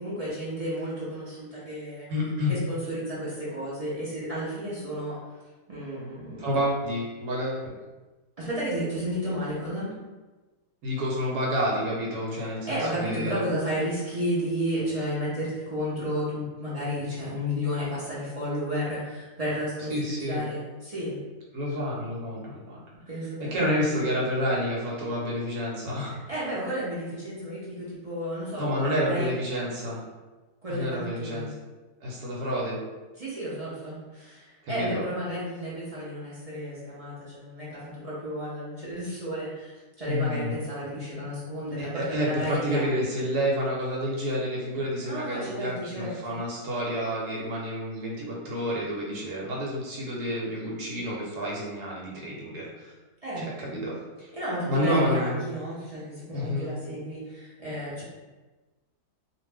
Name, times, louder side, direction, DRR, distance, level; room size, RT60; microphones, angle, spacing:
voice 1, 0.0-2.1 2.5-5.2 5.7-6.5 8.4-9.9 12.4-19.9 20.2-21.2 23.1-23.6 26.0-29.3 30.6-31.5 33.2-42.9 45.0-46.4 53.2-53.5 54.3-58.0, equal, 40° right, -9 dB, 0.5 m, -32 dB
voice 2, 2.1-2.5 6.4-7.6 10.8-13.4 19.9-20.4 21.5-22.8 23.5-26.1 28.6-30.0 30.7-31.5 32.0-32.8 34.6-35.0 40.1-40.6 41.8-52.9 53.4-53.9 54.2-54.3 54.7-55.4 56.3-56.7, equal, 85° right, -4 dB, 1.3 m, -29 dB
2.5 x 2.5 x 3.3 m, 1.2 s
omnidirectional pair, 1.7 m